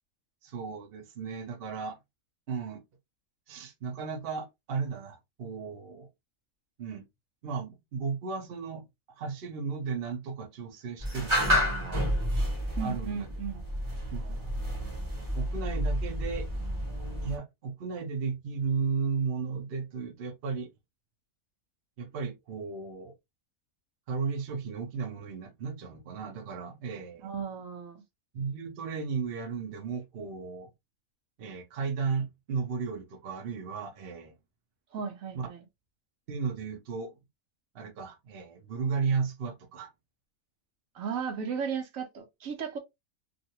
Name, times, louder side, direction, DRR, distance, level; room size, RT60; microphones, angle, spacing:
voice 1, 0.4-2.0 2.5-2.8 3.5-6.1 6.8-7.0 7.4-8.8 9.2-12.0 12.8-13.3 14.1-14.5 15.3-16.5 17.2-20.7 22.0-23.1 24.1-27.3 28.3-30.7 31.4-34.3 35.3-35.5 36.3-37.1 37.7-39.9, right 5 dB, 55° right, 0.8 m, -34 dB
sound 1, 11.0-17.4, equal, 25° right, 0.9 m, -30 dB
voice 2, 12.8-13.6 27.2-28.0 34.9-35.6 40.9-42.8, right 6 dB, 75° right, 1.1 m, -35 dB
2.7 x 2.5 x 2.8 m
omnidirectional pair, 1.4 m